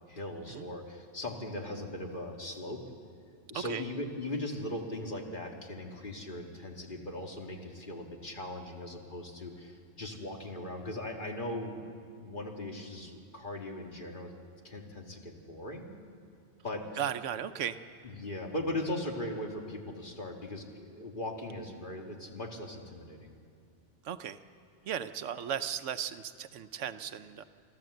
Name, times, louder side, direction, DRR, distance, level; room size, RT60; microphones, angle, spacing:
voice 1, 0.1-2.8 3.5-11.8 12.2-14.3 14.6-15.9 16.6-16.9 18.0-23.3, left 1 dB, 45° left, 2 dB, 2.2 m, -39 dB
voice 2, 17.0-17.8 24.0-24.4 24.9-27.4, right 9 dB, 85° right, 12 dB, 1.1 m, -36 dB
26.0 x 14.0 x 7.9 m, 2.3 s
omnidirectional pair, 1.2 m